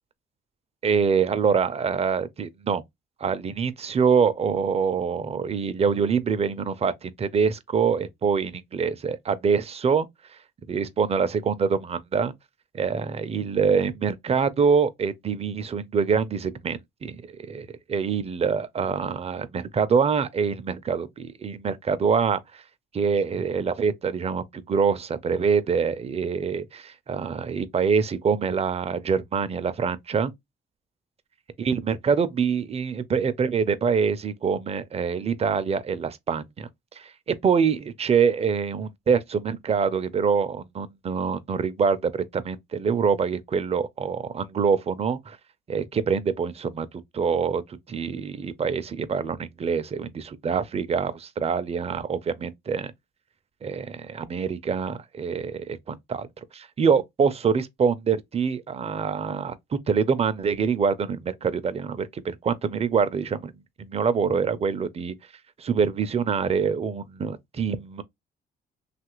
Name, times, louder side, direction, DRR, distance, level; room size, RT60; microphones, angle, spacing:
voice 1, 0.8-2.8 3.2-10.1 10.7-12.3 12.7-17.2 17.5-22.6 22.9-30.3 31.6-36.7 37.0-37.1 37.4-45.4 45.7-46.9 47.1-47.6 47.9-52.9 53.6-59.5 59.9-63.5 63.8-65.1 65.6-68.0, right 6 dB, 30° right, 0.5 m, -25 dB
2.9 x 2.4 x 2.9 m
cardioid pair, 90°, 20 cm